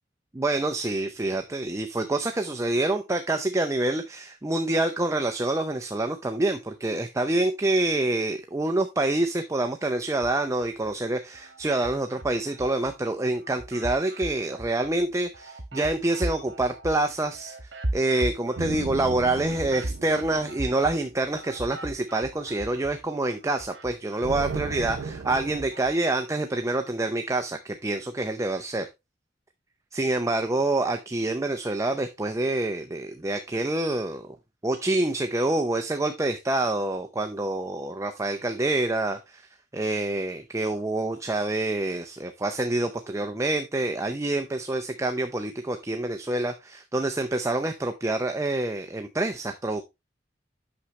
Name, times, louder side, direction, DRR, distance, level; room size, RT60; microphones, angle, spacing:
voice 1, 0.3-17.6 17.9-28.9 29.9-34.4 34.6-39.5 39.7-49.8, right 2 dB, 15° right, 6 dB, 0.6 m, -27 dB
sound 1, 10.1-10.9 11.3-12.9 13.3-23.0 23.3-25.9, right 1 dB, 70° right, 1.4 m, -38 dB
sound 2, 18.5-21.2 24.2-25.6, right 4 dB, 90° right, 0.6 m, -35 dB
8.6 x 6.4 x 3.1 m, 0.23 s
head